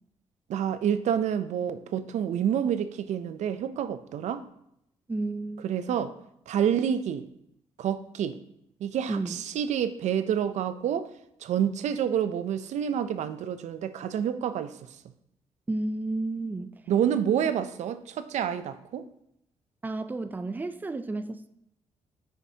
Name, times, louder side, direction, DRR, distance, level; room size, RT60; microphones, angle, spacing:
voice 1, 0.5-4.4 5.6-6.1 6.5-7.3 7.8-8.4 8.8-11.1 11.4-14.7 16.9-19.1, right 9 dB, 80° right, 0.5 m, -28 dB
voice 2, 5.1-6.0 9.1-9.4 15.7-16.8 19.8-21.5, right 2 dB, 15° right, 0.4 m, -32 dB
9.3 x 5.8 x 2.8 m
cardioid pair, 110°, 12 cm